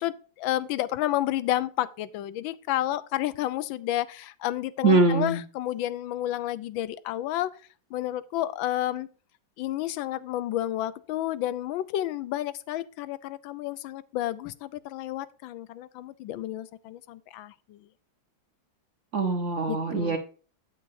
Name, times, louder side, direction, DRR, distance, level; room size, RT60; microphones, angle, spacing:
voice 1, 0.0-7.5 7.9-9.1 9.6-17.8 19.7-20.2, left 13 dB, 85° left, 1.4 m, -31 dB
voice 2, 4.8-5.4 19.1-20.2, right 3 dB, 50° right, 1.0 m, -23 dB
8.8 x 8.5 x 2.6 m
omnidirectional pair, 2.1 m